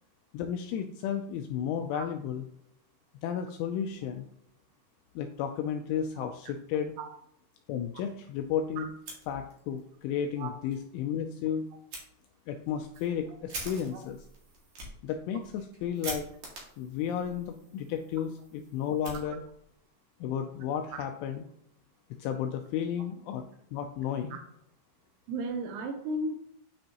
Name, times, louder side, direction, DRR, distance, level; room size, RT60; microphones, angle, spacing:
voice 1, 0.3-2.4 3.2-4.3 5.2-6.9 7.7-8.9 9.3-11.7 12.5-14.2 15.0-16.3 16.8-19.4 20.2-21.4 22.2-23.4 23.7-24.4, left 8 dB, 85° left, 5 dB, 2.7 m, -33 dB
Fire, 8.9-9.8 10.2-10.3 10.7-10.8 11.9-12.0 12.6-19.8, right 2 dB, 55° right, 2.0 m, -45 dB
voice 2, 25.3-26.4, right 2 dB, 80° right, 5 dB, 2.9 m, -34 dB
9.3 x 5.3 x 2.9 m, 0.71 s
omnidirectional pair, 6.0 m